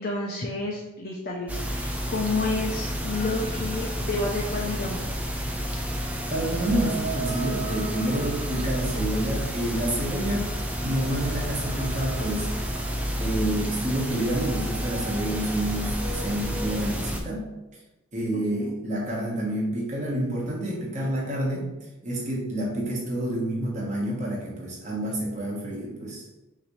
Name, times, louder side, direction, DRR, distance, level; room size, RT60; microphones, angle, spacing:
voice 1, 0.0-5.0 18.6-18.7, left 2 dB, 45° left, -3 dB, 0.6 m, -30 dB
sound 1, 1.5-17.2, equal, 5° right, 0.4 m, -30 dB
sound 2, 3.1-4.7 5.6-16.7, right 4 dB, 65° right, 1.0 m, -41 dB
voice 2, 6.3-10.5 10.8-12.5 13.2-17.5 18.1-21.7 22.0-26.2, right 1 dB, 35° right, -4 dB, 1.2 m, -28 dB
5.8 x 2.8 x 3.1 m, 1.0 s
head